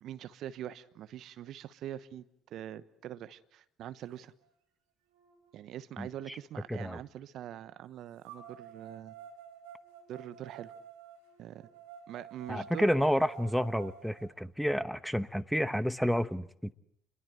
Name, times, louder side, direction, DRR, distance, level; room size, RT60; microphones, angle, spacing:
voice 1, 0.0-4.3 5.5-9.2 10.1-10.7 11.4-11.7 12.1-12.9, right 11 dB, 60° right, 15 dB, 1.1 m, -43 dB
sound 1, 4.4-4.5 5.1-7.0 8.2-14.3, right 7 dB, 80° right, 4.6 m, -51 dB
voice 2, 6.0-6.4 6.7-7.0 12.5-16.7, equal, ahead, 15 dB, 1.1 m, -30 dB
28.0 x 22.5 x 7.8 m, 0.75 s
hypercardioid pair, 60°, 0 cm